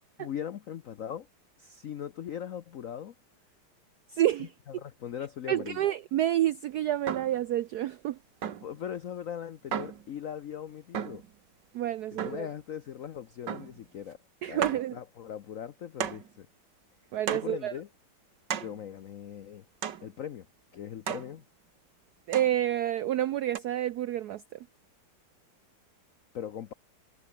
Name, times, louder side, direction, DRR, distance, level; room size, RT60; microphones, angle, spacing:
voice 1, 0.2-1.3 1.6-3.1 4.7-5.9 8.6-11.2 12.1-14.2 14.5-16.5 17.3-17.9 18.6-19.6 20.0-20.5 20.7-21.4 26.3-26.7, left 9 dB, 75° left, 0.7 m, -39 dB
voice 2, 4.1-4.5 5.5-8.2 11.7-12.5 14.4-15.0 17.1-17.7 22.3-24.4, right 12 dB, 90° right, 0.8 m, -28 dB
sound 1, 7.1-7.4 8.4-8.8 9.7-10.1 10.9-11.3 12.2-12.5 13.5-13.8 14.1-14.2 14.6-14.9 16.0-16.3 17.3-17.6 18.5-18.8 19.8-20.1 21.1-21.3 22.3-22.6 23.5-23.6, right 9 dB, 55° right, 1.9 m, -35 dB
omnidirectional pair, 2.4 m